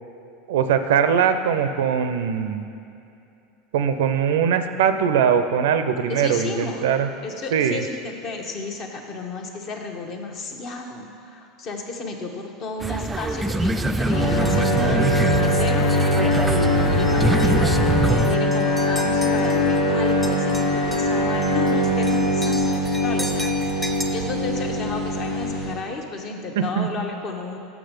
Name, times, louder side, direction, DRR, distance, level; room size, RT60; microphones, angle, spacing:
voice 1, 0.5-2.6 3.7-7.1 7.5-7.8 26.6-26.9, right 7 dB, 80° right, 9 dB, 0.4 m, -21 dB
voice 2, 6.1-6.9 7.2-16.1 16.4-17.7 18.1-27.6, left 3 dB, 50° left, 3 dB, 0.9 m, -33 dB
sound 1, 12.8-18.4, right 2 dB, 15° right, 0.3 m, -24 dB
sound 2, 14.1-25.7, left 1 dB, 80° left, 1.5 m, -21 dB
sound 3, 14.4-15.0 15.5-15.6 16.3-16.7 17.0-19.8 20.1-24.0, equal, 10° left, 0.7 m, -37 dB
6.1 x 6.0 x 5.1 m, 2.6 s
hypercardioid pair, 95°, 0 cm